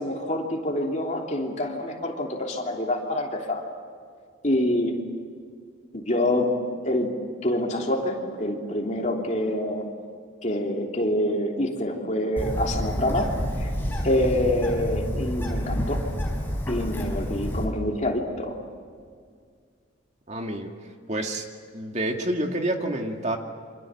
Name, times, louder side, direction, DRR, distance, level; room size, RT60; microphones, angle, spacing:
voice 1, 0.0-3.6 4.4-5.0 5.9-6.5 6.8-9.9 10.4-13.7 14.0-16.1 16.7-18.6, left 1 dB, 35° left, 1 dB, 3.1 m, -26 dB
Bird, 12.4-17.6, equal, 10° left, 5.0 m, -29 dB
voice 2, 20.3-20.7 21.1-21.4 21.7-23.4, right 1 dB, 35° right, 3 dB, 2.2 m, -28 dB
28.0 x 26.0 x 7.5 m, 2.1 s
head